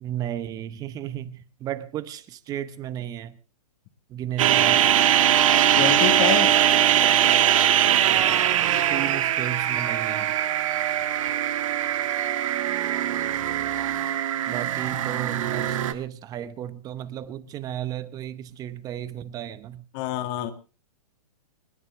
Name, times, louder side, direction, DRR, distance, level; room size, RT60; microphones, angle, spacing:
voice 1, 0.0-3.4 4.1-4.9 8.0-10.4 14.5-19.9, right 11 dB, 20° right, 0.9 m, -34 dB
sound 1, 4.4-15.9, right 11 dB, 55° right, 1.4 m, -21 dB
voice 2, 5.8-6.5 19.9-20.5, left 11 dB, 35° left, 1.9 m, -26 dB
29.5 x 10.5 x 3.5 m
hypercardioid pair, 150°, 20 cm